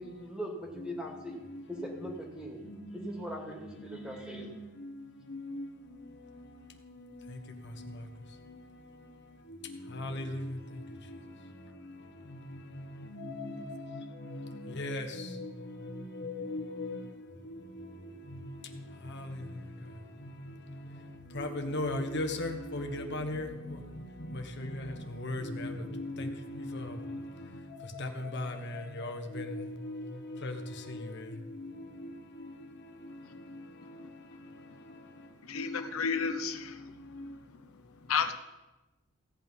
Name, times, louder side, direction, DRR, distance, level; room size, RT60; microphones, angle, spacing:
voice 1, 0.0-1.4 1.7-2.6 2.9-4.5, equal, 5° right, 2.5 m, -41 dB
voice 2, 1.5-2.1 2.6-3.3 4.0-4.5 4.8-4.9 5.3-6.0 6.4-6.5 6.8-8.1 8.5-8.6 9.6-10.6 11.1-11.2 12.3-17.1 17.5-19.5 20.2-20.5 21.3-27.2 27.8-32.1 32.3-32.5 33.9-34.0 35.5-35.8 36.3-36.4 37.1-37.3, left 1 dB, 55° left, 1.3 m, -39 dB
voice 3, 33.2-33.6 34.0-34.1 35.4-37.0 37.5-37.6 38.1-38.3, left 6 dB, 85° left, 0.8 m, -33 dB
16.5 x 8.6 x 5.5 m
head